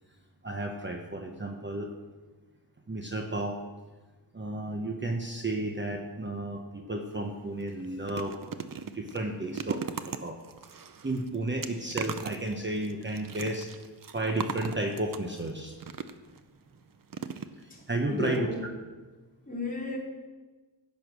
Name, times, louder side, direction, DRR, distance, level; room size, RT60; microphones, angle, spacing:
voice 1, 0.4-1.9 2.9-3.6 4.3-8.4 8.9-10.4 10.7-10.8 11.0-13.7 14.1-15.7 17.6-18.5, right 2 dB, 25° right, 3 dB, 1.1 m, -33 dB
sound 1, 7.1-7.2 7.6-16.4 17.1-17.9 18.2-18.4 18.6-18.7, right 6 dB, 55° right, 0.8 m, -39 dB
voice 2, 17.7-18.6 19.5-20.0, left 1 dB, 20° left, -4 dB, 3.7 m, -33 dB
16.0 x 8.5 x 6.2 m, 1.3 s
wide cardioid pair, 130°, 41 cm